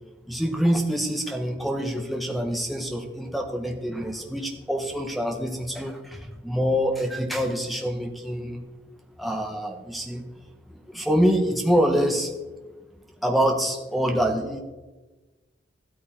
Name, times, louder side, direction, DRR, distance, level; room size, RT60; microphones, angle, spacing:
voice 1, 0.3-8.7 9.2-10.3 10.7-12.3 13.2-14.6, equal, ahead, 1 dB, 1.6 m, -25 dB
14.0 x 13.0 x 4.6 m, 1.2 s
head